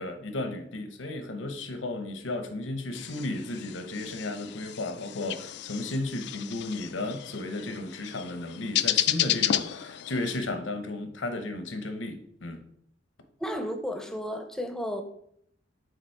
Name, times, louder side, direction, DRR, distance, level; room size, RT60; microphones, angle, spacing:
voice 1, 0.0-12.6, left 2 dB, 85° left, 0.9 m, -34 dB
sound 1, 2.9-10.4, left 12 dB, 60° left, 0.3 m, -32 dB
voice 2, 13.4-15.0, equal, 5° left, 0.7 m, -33 dB
8.1 x 4.0 x 4.5 m
head